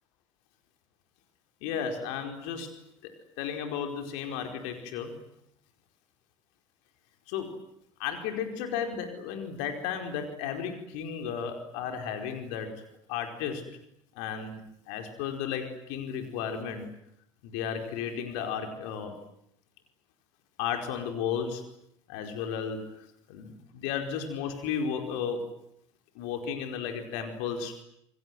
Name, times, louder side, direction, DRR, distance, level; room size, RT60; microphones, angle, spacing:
voice 1, 1.6-2.7 3.0-3.1 3.4-5.1 7.3-7.6 8.0-12.7 13.1-13.6 14.1-14.6 14.9-16.9 17.4-19.1 20.6-21.6 22.1-22.8 23.3-25.4 26.1-27.7, left 7 dB, 60° left, 5 dB, 4.8 m, -34 dB
28.0 x 22.0 x 9.5 m, 0.76 s
figure-of-eight pair, 65°, 16 cm